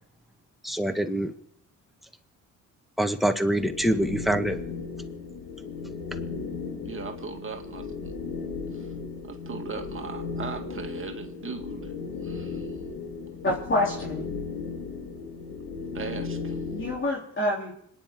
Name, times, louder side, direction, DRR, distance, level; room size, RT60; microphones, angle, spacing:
voice 1, 0.6-1.3 3.0-4.6, right 1 dB, ahead, 7 dB, 1.8 m, -25 dB
sound 1, 3.6-17.0, left 4 dB, 75° left, 2.6 m, -36 dB
voice 2, 6.8-8.1 8.7-8.9 9.2-11.9 12.2-12.7 15.9-16.6, right 5 dB, 40° right, 4 dB, 2.0 m, -38 dB
voice 3, 13.4-14.3 16.7-17.7, left 1 dB, 35° left, -4 dB, 3.5 m, -27 dB
26.5 x 10.0 x 3.9 m, 0.70 s
supercardioid pair, 70°, 34 cm